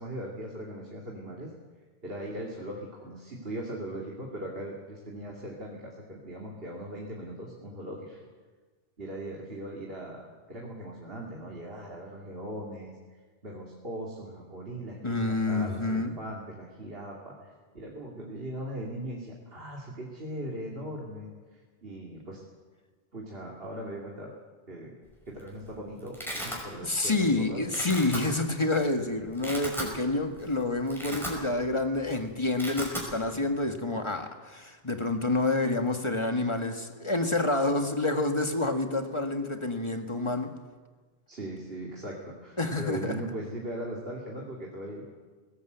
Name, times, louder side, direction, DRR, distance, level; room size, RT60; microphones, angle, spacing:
voice 1, 0.0-1.5 2.0-8.2 9.0-12.9 13.4-22.4 23.1-24.3 24.7-24.9 25.3-27.6 41.3-45.1, right 1 dB, 60° right, -2 dB, 2.9 m, -39 dB
voice 2, 15.0-16.2 26.8-40.5 42.6-43.2, left 2 dB, 25° left, 5 dB, 1.7 m, -28 dB
Domestic sounds home sounds, 25.1-25.5 25.7-26.6 27.1-27.3 27.6-28.2 28.8-28.9 29.3-29.9 30.3-30.5 30.8-31.7 32.0-32.2 32.4-33.1, equal, ahead, 5.4 m, -36 dB
20.5 x 18.0 x 8.1 m, 1.4 s
omnidirectional pair, 1.1 m